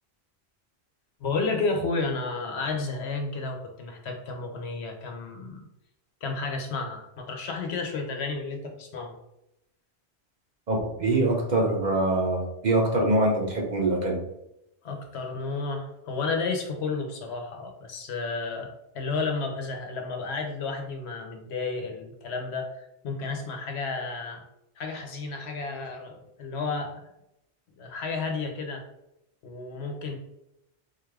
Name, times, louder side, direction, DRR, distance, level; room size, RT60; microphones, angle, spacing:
voice 1, 1.2-5.7 6.2-9.2 14.8-18.7 18.9-24.4 24.8-27.0 27.8-28.8 29.4-30.2, left 3 dB, 80° left, 3 dB, 1.0 m, -32 dB
voice 2, 10.7-14.2, right 2 dB, 50° right, 0 dB, 0.7 m, -24 dB
4.0 x 2.4 x 3.2 m, 0.84 s
omnidirectional pair, 1.1 m